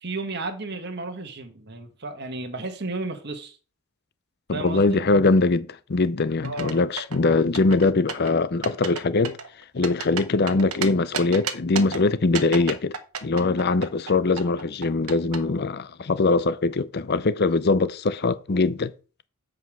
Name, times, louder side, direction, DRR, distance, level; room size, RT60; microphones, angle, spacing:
voice 1, 0.0-3.6 4.5-5.0 6.4-6.8, right 2 dB, 50° right, 1.3 m, -33 dB
voice 2, 4.5-9.4 9.7-12.9 13.2-18.9, left 3 dB, 45° left, 0.6 m, -22 dB
sound 1, 6.4-7.2 7.6-8.3 8.6-9.0 9.3-10.9 11.1-12.0 12.4-14.1 14.4-15.4, right 6 dB, 75° right, 1.2 m, -31 dB
8.1 x 5.0 x 6.1 m
head